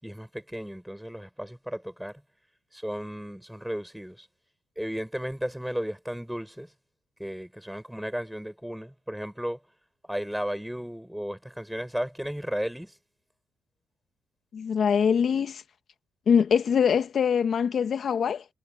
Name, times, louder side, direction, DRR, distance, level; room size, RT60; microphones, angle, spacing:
voice 1, 0.0-2.2 2.7-4.3 4.8-6.7 7.2-9.6 10.1-13.0, equal, 5° right, 6.4 m, -34 dB
voice 2, 14.5-15.6 16.3-18.4, left 7 dB, 55° left, 1.0 m, -23 dB
cardioid pair, 90°, 0 cm